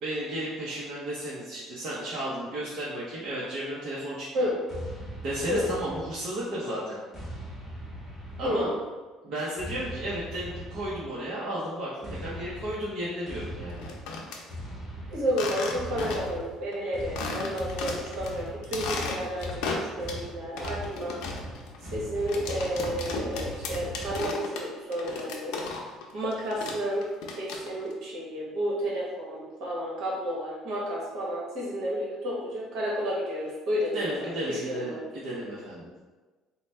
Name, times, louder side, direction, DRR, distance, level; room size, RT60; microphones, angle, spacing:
voice 1, 0.0-4.3 5.2-7.0 8.4-8.7 9.2-13.9 33.9-36.1, right 1 dB, 50° right, -8 dB, 0.8 m, -33 dB
sound 1, 4.7-6.5 7.1-8.9 9.6-11.2 12.0-24.3, equal, ahead, 1.3 m, -40 dB
voice 2, 8.4-8.7 15.1-21.2 21.9-25.7 26.1-27.0 27.4-35.0, equal, 65° right, -4 dB, 1.1 m, -31 dB
sound 2, 13.7-14.4 15.3-16.4 16.7-16.8 17.2-18.3 18.6-20.3 20.6-26.1 26.3-27.9, left 4 dB, 85° left, 0.5 m, -35 dB
4.0 x 2.2 x 3.2 m, 1.3 s
cardioid pair, 145°, 0 cm